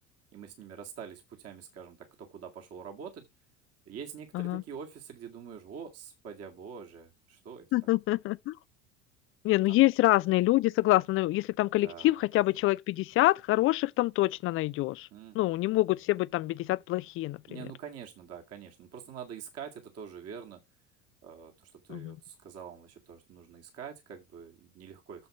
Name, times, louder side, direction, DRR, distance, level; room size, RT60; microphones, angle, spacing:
voice 1, 0.3-3.3 3.9-7.7 9.7-9.8 11.8-12.2 15.1-15.8 17.5-20.6 21.2-25.3, right 7 dB, 35° right, 2.2 m, -45 dB
voice 2, 7.7-8.6 9.4-15.1 15.3-17.6 21.9-22.2, left 18 dB, 35° left, 0.5 m, -26 dB
7.8 x 7.3 x 4.9 m
figure-of-eight pair, 70°, 40 cm